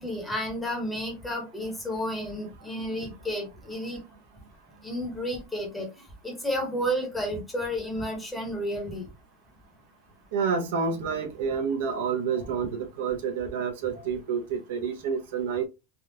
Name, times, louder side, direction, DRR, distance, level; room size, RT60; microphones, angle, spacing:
voice 1, 0.0-4.0 4.8-9.1, equal, 5° left, 0.9 m, -31 dB
voice 2, 10.3-15.6, right 6 dB, 70° right, 0.7 m, -29 dB
3.5 x 2.3 x 2.7 m
supercardioid pair, 170°, 0 cm